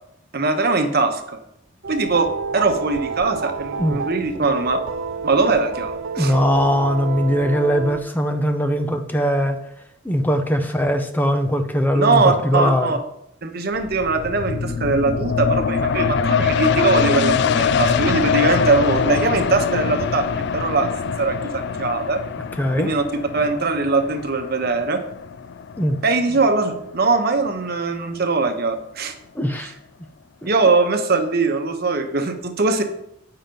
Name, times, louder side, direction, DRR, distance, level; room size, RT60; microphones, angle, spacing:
voice 1, 0.3-1.4 1.9-4.8 5.2-6.3 11.9-13.0 13.4-20.3 20.5-20.9 21.2-22.2 22.8-23.0 23.3-25.0 26.0-29.1 29.6-29.7 30.4-32.8, right 3 dB, 50° right, 6 dB, 1.0 m, -21 dB
sound 1, 1.8-8.0, right 5 dB, 75° right, 0.6 m, -30 dB
voice 2, 6.2-9.6 10.0-12.9 22.6-22.9 25.8-26.0 29.4-29.7, equal, 10° left, 5 dB, 0.6 m, -20 dB
sound 2, 13.7-27.0 27.5-27.6, left 6 dB, 60° left, 0.4 m, -23 dB
9.0 x 5.7 x 5.3 m, 0.77 s
head